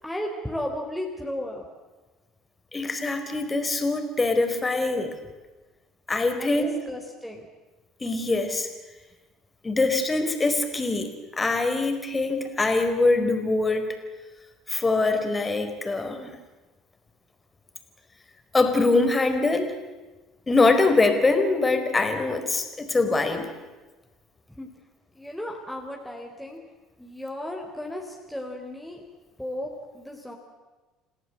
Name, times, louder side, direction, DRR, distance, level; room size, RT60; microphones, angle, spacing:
voice 1, 0.0-1.7 6.4-7.5 24.5-24.7 25.1-26.6 27.0-29.0 29.4-30.3, left 1 dB, ahead, 0 dB, 3.9 m, -34 dB
voice 2, 2.7-5.1 6.1-6.7 8.0-8.7 9.6-13.9 14.7-16.3 18.5-19.7 20.5-23.5, left 3 dB, 20° left, 7 dB, 4.4 m, -23 dB
29.0 x 17.5 x 8.0 m, 1.2 s
hypercardioid pair, 65°, 0 cm